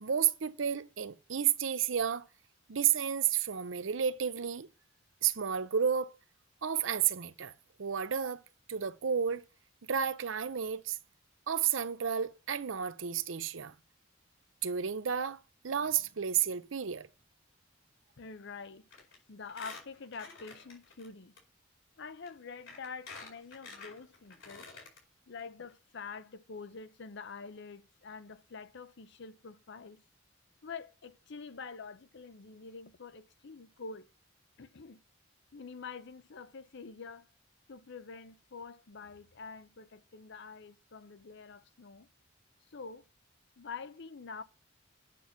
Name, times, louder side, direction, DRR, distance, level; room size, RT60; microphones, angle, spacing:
voice 1, 0.0-2.2 2.7-4.7 5.2-6.1 6.6-7.5 7.8-8.4 8.7-9.4 9.9-11.0 11.5-13.7 14.6-15.4 15.6-17.1, right 8 dB, 70° right, 0.6 m, -31 dB
voice 2, 18.2-18.9 19.3-21.3 22.0-24.7 25.3-30.0 30.6-34.1 34.6-35.0 35.5-37.3 37.7-42.1 42.7-43.1 43.6-44.4, left 5 dB, 60° left, 0.7 m, -46 dB
Squeak, 18.9-19.2 19.5-21.1 21.4-21.5 22.2-22.3 22.7-25.0 25.4-25.5 25.7-25.8, left 4 dB, 80° left, 5.0 m, -48 dB
9.2 x 5.9 x 5.8 m
head